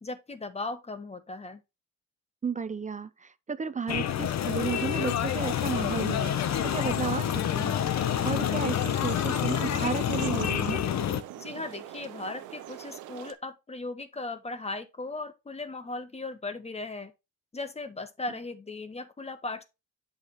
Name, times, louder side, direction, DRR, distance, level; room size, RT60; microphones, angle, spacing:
voice 1, 0.0-1.6 11.4-17.1 17.5-19.6, left 2 dB, 20° left, 1.2 m, -37 dB
voice 2, 2.4-6.4 6.6-7.3 7.6-10.8, right 5 dB, 25° right, 0.5 m, -33 dB
sound 1, 3.9-11.2, left 10 dB, 60° left, 0.8 m, -28 dB
sound 2, 4.4-13.3, right 12 dB, 90° right, 0.7 m, -44 dB
8.1 x 5.8 x 3.0 m
cardioid pair, 90°, 30 cm